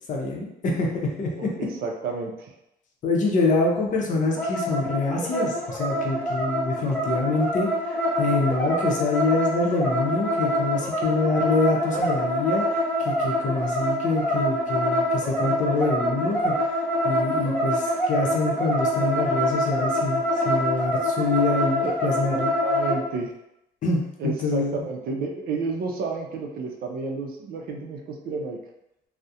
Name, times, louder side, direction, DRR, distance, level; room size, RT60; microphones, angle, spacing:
voice 1, 0.1-1.5 3.0-16.7 17.0-22.5 23.8-24.8, left 3 dB, 50° left, -1 dB, 0.6 m, -26 dB
voice 2, 1.4-2.5 21.8-21.9 22.3-23.3 24.2-28.6, right 3 dB, 60° right, 1 dB, 0.5 m, -31 dB
sound 1, 4.4-23.0, equal, 10° left, 0.5 m, -25 dB
2.3 x 2.0 x 2.7 m, 0.85 s
cardioid pair, 110°, 17 cm